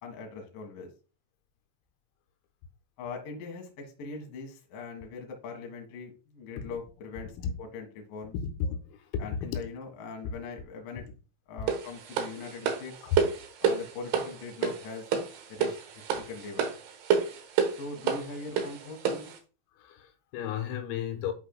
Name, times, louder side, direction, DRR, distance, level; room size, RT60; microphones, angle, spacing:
voice 1, 0.0-0.9 3.0-8.3 9.2-11.0 11.5-12.9 13.6-15.1 15.5-16.7 17.8-19.3, left 4 dB, 60° left, 2.4 m, -41 dB
voice 2, 8.3-9.5 11.6-11.7 13.0-13.2 19.8-21.3, left 7 dB, 90° left, 3.7 m, -33 dB
sound 1, 11.7-19.4, right 6 dB, 75° right, 2.4 m, -29 dB
11.0 x 4.9 x 2.2 m
omnidirectional pair, 6.0 m